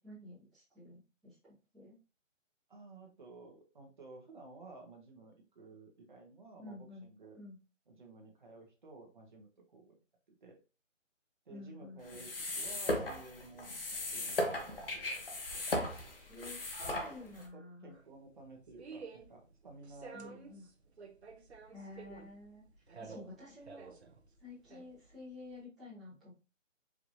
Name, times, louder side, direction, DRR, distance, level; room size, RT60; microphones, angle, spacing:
voice 1, 0.0-1.4 1.7-1.9 6.6-7.1 7.4-7.6 11.5-12.3 16.3-17.9 20.1-20.7 21.7-22.6 23.0-23.9 24.4-26.3, left 2 dB, ahead, -17 dB, 0.6 m, -50 dB
voice 2, 2.7-7.4 7.9-9.9 10.4-10.6 11.5-12.3 12.5-13.7 14.0-15.2 15.5-15.6 17.2-20.6, right 3 dB, 40° right, 1 dB, 1.1 m, -54 dB
sound 1, 12.0-17.5, left 1 dB, 45° left, 0.8 m, -37 dB
sound 2, 17.9-25.6, right 5 dB, 55° right, 0.7 m, -52 dB
4.7 x 3.2 x 2.6 m, 0.32 s
hypercardioid pair, 175°, 39 cm